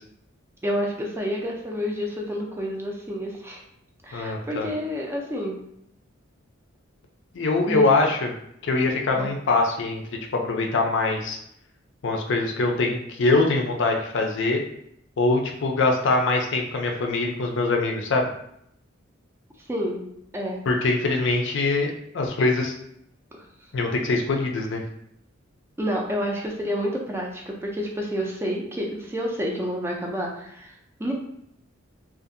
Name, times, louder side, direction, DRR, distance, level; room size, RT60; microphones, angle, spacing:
voice 1, 0.6-3.6 4.0-5.6 7.7-7.8 9.2-9.3 19.7-20.6 23.3-23.5 25.8-31.1, equal, 10° right, -1 dB, 0.4 m, -29 dB
voice 2, 4.1-4.7 7.3-8.3 8.6-10.0 10.3-11.4 12.0-14.6 15.2-18.3 20.7-22.8 23.7-24.8, left 3 dB, 65° left, 2 dB, 0.5 m, -23 dB
2.6 x 2.4 x 2.5 m, 0.73 s
head